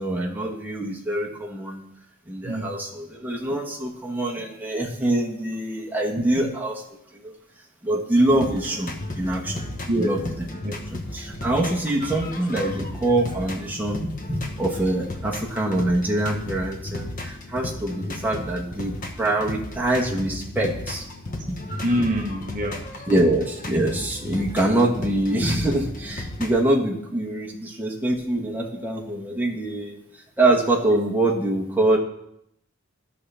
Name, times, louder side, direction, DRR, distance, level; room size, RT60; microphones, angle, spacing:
voice 1, 0.0-1.8 2.3-6.8 7.1-7.3 7.8-9.6 10.0-10.2 10.9-21.0 21.5-21.6 23.1-30.0 30.4-32.0, right 1 dB, 10° right, -3 dB, 1.2 m, -24 dB
voice 2, 2.4-2.8 6.4-6.5 9.9-10.2 10.6-10.7 21.8-23.2, equal, 35° right, 1 dB, 0.9 m, -26 dB
sound 1, 8.1-26.6, left 1 dB, 40° left, 1.0 m, -34 dB
13.5 x 5.8 x 3.4 m, 0.77 s
head